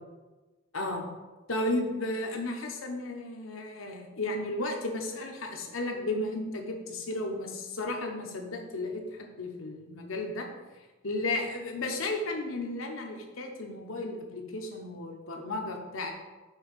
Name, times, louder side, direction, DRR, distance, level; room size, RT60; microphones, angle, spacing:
voice 1, 0.7-1.0 1.5-10.5 11.0-16.1, left 2 dB, 85° left, 2 dB, 1.0 m, -34 dB
5.6 x 3.5 x 5.6 m, 1.2 s
head